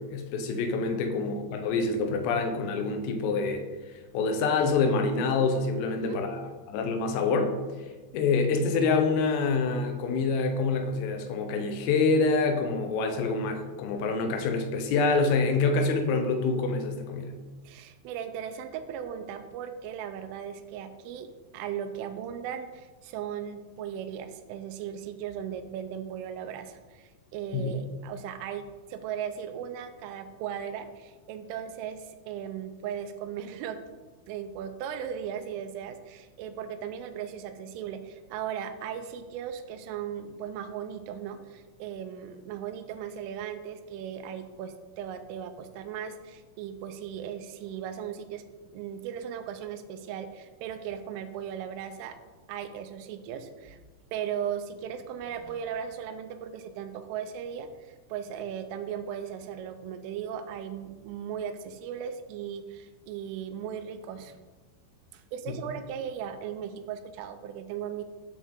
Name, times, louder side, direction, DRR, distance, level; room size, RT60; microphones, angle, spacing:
voice 1, 0.0-3.7 4.1-6.5 6.7-7.5 8.1-17.3 27.5-27.7, left 4 dB, 85° left, 5 dB, 3.6 m, -26 dB
voice 2, 5.9-6.2 17.7-21.3 21.5-33.8 34.3-48.4 48.7-52.2 52.5-53.8 54.1-64.4 65.1-68.0, right 8 dB, 85° right, 9 dB, 3.1 m, -37 dB
10.0 x 7.3 x 3.6 m, 1.3 s
omnidirectional pair, 5.8 m